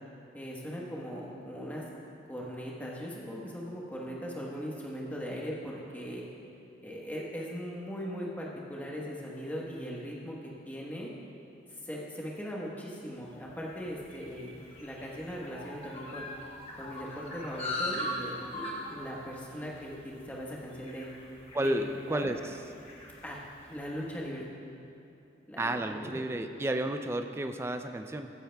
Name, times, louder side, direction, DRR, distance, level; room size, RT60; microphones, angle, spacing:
voice 1, 0.3-1.8 2.3-6.2 6.8-10.4 10.6-11.1 11.8-16.3 16.8-21.1 21.6-21.8 22.1-22.3 23.2-23.4 23.7-24.5 25.5-26.2, equal, 10° left, -4 dB, 1.1 m, -39 dB
sound 1, 13.4-24.0, left 1 dB, 35° left, 1.1 m, -41 dB
voice 2, 21.5-22.6 25.6-28.3, right 1 dB, 15° right, 7 dB, 0.3 m, -32 dB
15.0 x 10.5 x 2.3 m, 2.8 s
head